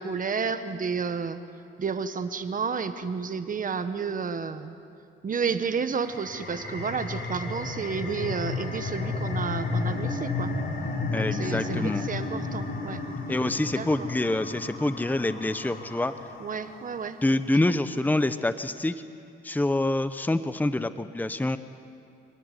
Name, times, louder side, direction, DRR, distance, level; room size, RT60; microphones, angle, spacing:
voice 1, 0.0-1.4 1.8-4.7 5.2-10.5 11.2-13.0 13.7-14.1 16.4-17.2 17.7-17.8, right 5 dB, 45° right, 10 dB, 1.5 m, -31 dB
sound 1, 5.9-17.1, left 3 dB, 50° left, 5.6 m, -33 dB
voice 2, 11.1-12.0 13.3-16.1 17.2-19.0 19.4-21.6, left 2 dB, 10° left, 11 dB, 0.9 m, -26 dB
27.0 x 19.5 x 9.6 m, 2.4 s
cardioid pair, 90°, 20 cm